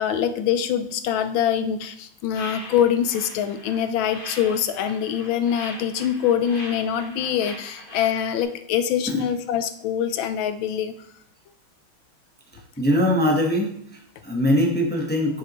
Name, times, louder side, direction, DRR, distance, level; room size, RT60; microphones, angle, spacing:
voice 1, 0.0-10.9, left 9 dB, 80° left, 10 dB, 1.4 m, -24 dB
sound 1, 2.3-8.4, left 1 dB, 25° left, 1.9 m, -40 dB
voice 2, 12.8-15.4, equal, 10° left, 0 dB, 0.7 m, -22 dB
9.0 x 6.6 x 3.0 m, 0.67 s
omnidirectional pair, 2.2 m